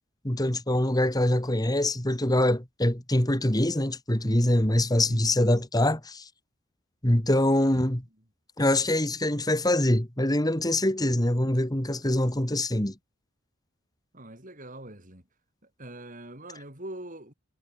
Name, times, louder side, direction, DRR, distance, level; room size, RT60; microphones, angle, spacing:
voice 1, 0.2-6.2 7.0-8.0 8.6-12.9, left 1 dB, 20° left, 2.1 m, -24 dB
voice 2, 5.0-5.6 14.1-15.2 15.8-17.3, right 1 dB, 40° right, 5.8 m, -43 dB
head